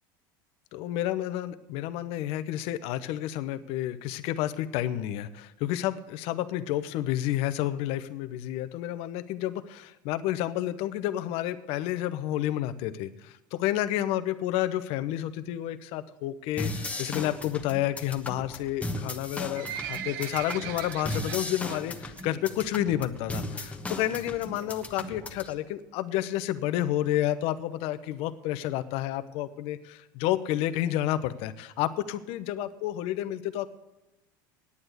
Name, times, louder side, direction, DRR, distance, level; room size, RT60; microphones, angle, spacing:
voice 1, 0.7-33.7, left 13 dB, 65° left, 12 dB, 0.9 m, -30 dB
sound 1, 16.6-25.5, left 2 dB, 10° left, 1.2 m, -36 dB
Livestock farm animals working animals, 19.2-21.8 22.2-22.5 22.8-22.9 23.5-23.6 23.9-24.0 24.2-24.3 24.8-25.1 25.7-25.8 26.0-26.1 26.3-26.4 26.6-26.7 27.1-27.2 27.7-27.8 28.3-28.4, right 10 dB, 80° right, 0.6 m, -39 dB
9.8 x 8.9 x 8.1 m, 0.95 s
supercardioid pair, 105°, 11 cm